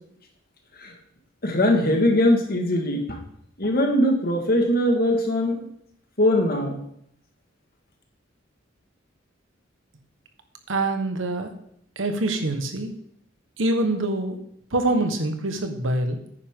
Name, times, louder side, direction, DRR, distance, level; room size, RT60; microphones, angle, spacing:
voice 1, 1.4-3.2 3.6-5.7 6.2-6.8, left 1 dB, 50° left, 3 dB, 1.9 m, -21 dB
voice 2, 10.7-11.5 12.0-12.9 13.6-14.4 14.7-16.2, right 2 dB, 70° right, 6 dB, 1.3 m, -25 dB
9.9 x 9.6 x 3.8 m, 0.70 s
head